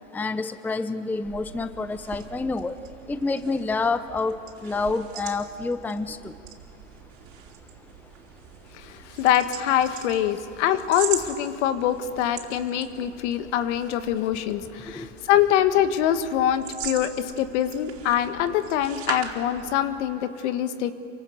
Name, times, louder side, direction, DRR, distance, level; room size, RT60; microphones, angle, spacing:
voice 1, 0.1-2.7 3.1-6.3 15.0-15.1, left 3 dB, 5° left, 12 dB, 0.6 m, -28 dB
sound 1, 1.2-20.0, right 9 dB, 50° right, 4.3 m, -41 dB
voice 2, 8.8-20.9, left 11 dB, 65° left, 10 dB, 1.7 m, -24 dB
28.0 x 24.5 x 6.7 m, 2.5 s
hypercardioid pair, 115°, 38 cm